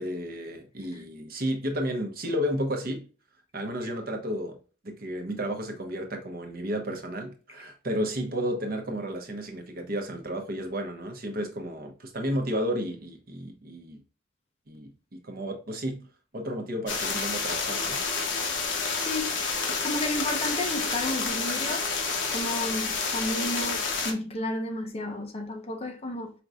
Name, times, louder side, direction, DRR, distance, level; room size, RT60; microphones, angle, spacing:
voice 1, 0.0-3.1 3.5-4.6 4.8-14.0 14.7-18.0, equal, 50° right, 0.8 m, -32 dB
sound 1, 16.9-24.1, left 4 dB, 65° left, 0.9 m, -29 dB
voice 2, 18.9-19.4 19.7-21.9 22.3-26.3, left 1 dB, 30° left, 0.7 m, -32 dB
5.1 x 3.0 x 2.4 m
head